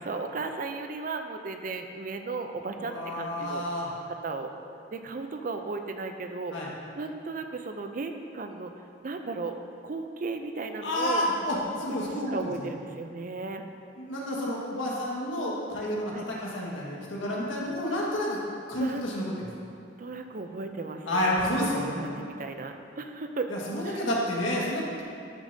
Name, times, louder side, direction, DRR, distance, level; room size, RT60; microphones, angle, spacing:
voice 1, 0.0-3.7 4.1-4.5 4.9-8.7 9.0-9.6 9.8-11.2 12.3-13.6 16.1-16.2 18.7-19.1 20.0-23.5 23.8-24.1, right 3 dB, 45° right, 6 dB, 0.5 m, -35 dB
voice 2, 2.8-3.9 6.5-6.7 10.8-12.5 14.0-18.4 18.7-19.2 21.1-22.2 23.5-25.0, left 1 dB, 90° left, -4 dB, 1.7 m, -30 dB
11.5 x 6.8 x 2.7 m, 2.4 s
head